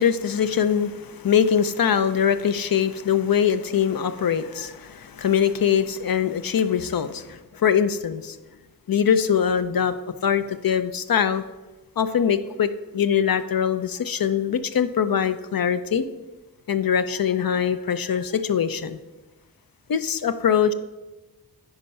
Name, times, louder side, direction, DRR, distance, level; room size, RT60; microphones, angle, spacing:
voice 1, 0.0-8.4 8.9-10.0 10.2-11.4 12.0-16.1 16.7-19.0 19.9-20.7, left 8 dB, 65° left, 11 dB, 0.6 m, -22 dB
9.6 x 4.7 x 5.3 m, 1.1 s
cardioid pair, 50°, 37 cm